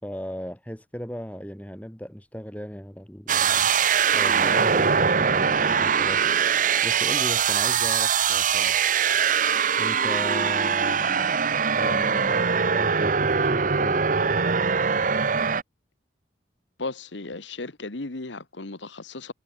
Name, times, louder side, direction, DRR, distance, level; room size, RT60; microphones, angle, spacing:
voice 1, 0.0-3.7 4.1-6.3 6.8-8.8 9.8-11.4 11.8-12.4 12.7-14.6, equal, 10° left, 4.5 m, -37 dB
sound 1, 3.3-15.6, right 6 dB, 45° right, 0.9 m, -22 dB
voice 2, 16.8-19.3, left 3 dB, 90° left, 1.5 m, -35 dB
head